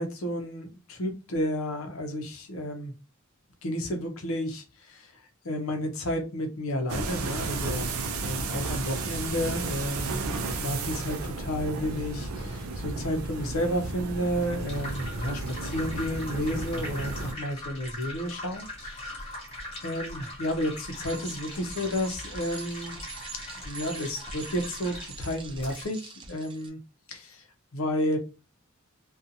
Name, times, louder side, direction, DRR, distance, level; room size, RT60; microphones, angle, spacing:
voice 1, 0.0-2.9 3.6-7.9 8.2-10.2 10.6-19.4 19.8-23.0 23.6-26.8 27.1-27.4 27.7-28.2, equal, 75° left, 4 dB, 0.7 m, -31 dB
sound 1, 6.9-17.3, right 3 dB, 85° right, 0.5 m, -33 dB
sound 2, 14.1-25.9, left 1 dB, 30° left, 1.0 m, -41 dB
Bicycle, 21.0-26.7, right 5 dB, 25° right, 0.3 m, -44 dB
2.7 x 2.4 x 2.5 m, 0.30 s
head